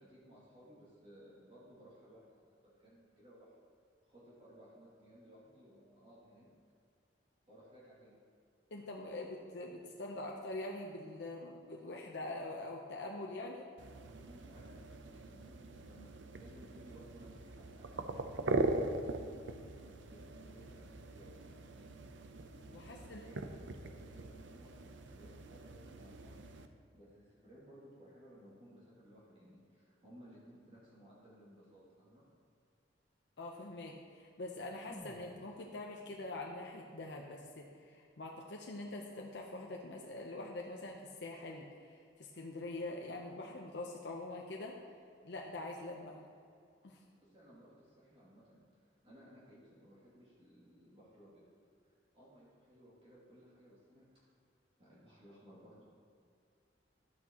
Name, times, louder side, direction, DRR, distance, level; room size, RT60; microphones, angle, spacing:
voice 1, 0.0-3.5 4.0-6.5 7.5-8.2 14.2-19.2 19.7-22.1 22.8-32.2 47.2-51.5 51.8-54.2 54.8-55.8, equal, 30° right, -8 dB, 2.4 m, -59 dB
voice 2, 8.7-13.7 19.4-19.7 22.7-23.2 33.4-44.8 45.2-46.2 46.8-47.0, left 2 dB, 65° left, 0 dB, 0.7 m, -44 dB
sound 1, 13.8-26.7, right 2 dB, 85° right, 0.6 m, -41 dB
sound 2, 34.9-38.9 39.2-39.3, left 1 dB, 15° left, 0.5 m, -58 dB
12.5 x 8.5 x 2.9 m, 2.4 s
head